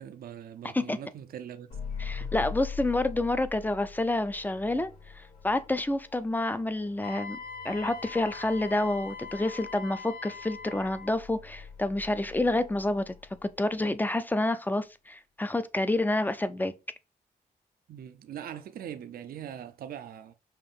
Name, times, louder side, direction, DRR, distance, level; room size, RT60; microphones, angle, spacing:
voice 1, 0.0-1.7 2.2-2.3 17.9-20.3, right 9 dB, 75° right, 0.5 m, -41 dB
sound 1, 1.7-13.9, left 6 dB, 60° left, 2.6 m, -44 dB
voice 2, 2.0-7.4 7.6-13.1 13.4-16.7, left 2 dB, 10° left, 0.4 m, -28 dB
Wind instrument woodwind instrument, 7.0-11.2, left 5 dB, 85° left, 0.7 m, -42 dB
5.6 x 2.5 x 3.5 m
cardioid pair, 90°, 15 cm